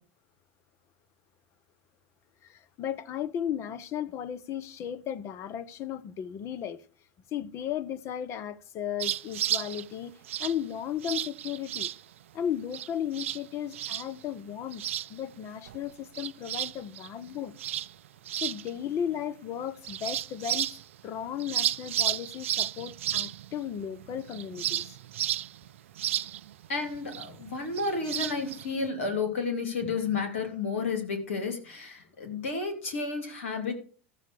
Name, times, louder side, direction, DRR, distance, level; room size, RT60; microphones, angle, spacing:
voice 1, 2.4-6.8 7.3-11.9 12.3-14.8 15.1-17.5 18.3-25.0, left 9 dB, 45° left, 1.0 m, -35 dB
sound 1, 9.0-9.8 10.3-10.6 11.0-12.0 12.7-12.9 13.1-13.4 13.7-14.2 14.7-15.4 15.7-18.8 19.1-19.2 19.8-21.0 21.4-28.9, right 11 dB, 80° right, 0.4 m, -33 dB
voice 2, 26.7-33.7, left 4 dB, 80° left, 3.0 m, -31 dB
14.0 x 7.3 x 4.7 m
hypercardioid pair, 95°, 7 cm